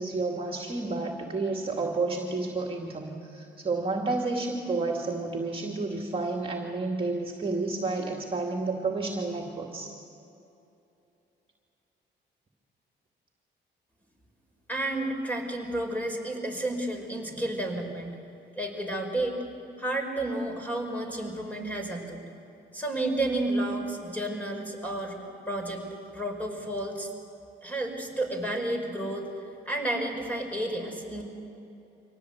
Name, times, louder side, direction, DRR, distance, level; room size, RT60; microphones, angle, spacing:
voice 1, 0.0-9.9 17.3-17.4, right 3 dB, 25° right, 2 dB, 2.5 m, -30 dB
voice 2, 14.7-18.2 18.6-19.4 19.8-22.3 22.7-25.2 25.5-25.9 26.1-27.1 27.6-29.2 29.6-31.2, right 1 dB, 10° left, 2 dB, 5.1 m, -31 dB
25.0 x 18.0 x 8.2 m, 2.8 s
cardioid pair, 90°, 20 cm